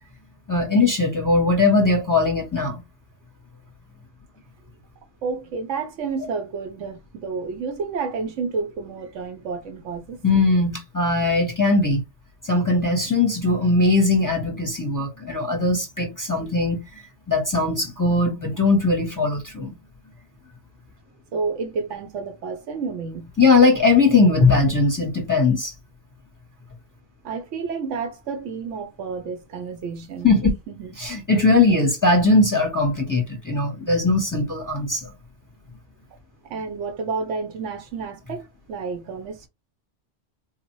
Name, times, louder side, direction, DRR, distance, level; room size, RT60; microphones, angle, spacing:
voice 1, 0.5-2.8 10.2-12.0 12.4-16.8 17.3-19.8 23.4-25.7 30.2-30.5 31.0-35.1, left 3 dB, 20° left, 0.7 m, -19 dB
voice 2, 5.2-10.2 21.3-23.3 27.2-30.3 30.7-30.9 36.4-39.5, right 4 dB, 85° right, 1.1 m, -30 dB
3.8 x 2.1 x 3.0 m
omnidirectional pair, 1.2 m